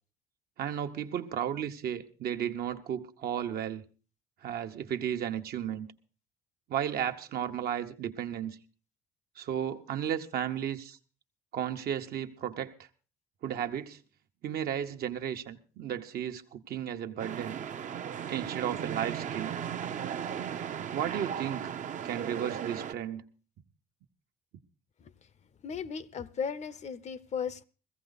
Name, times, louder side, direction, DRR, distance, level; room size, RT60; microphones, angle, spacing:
voice 1, 0.6-3.8 4.4-5.9 6.7-8.6 9.4-11.0 11.5-12.7 13.4-14.0 14.4-17.6 18.3-19.6 20.9-21.7 22.0-23.2, right 9 dB, 65° right, 1.1 m, -34 dB
sound 1, 17.2-22.9, right 8 dB, 45° right, 0.7 m, -36 dB
voice 2, 25.6-27.6, left 6 dB, 40° left, 0.7 m, -36 dB
16.5 x 14.5 x 4.1 m
cardioid pair, 110°, 17 cm